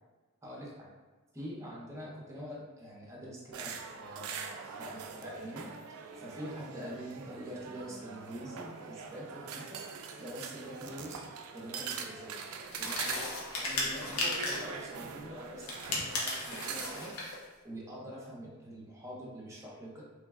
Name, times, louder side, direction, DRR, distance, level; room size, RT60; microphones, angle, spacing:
voice 1, 0.4-0.9 1.3-5.7 6.2-9.8 10.2-11.3 11.5-12.4 12.8-13.2 13.6-20.0, equal, 15° right, -5 dB, 0.7 m, -45 dB
sound 1, 3.5-17.1, right 5 dB, 85° right, 0.4 m, -43 dB
sound 2, 12.7-14.7 15.6-17.4, left 2 dB, 85° left, 0.8 m, -35 dB
3.1 x 2.2 x 3.4 m, 1.3 s
head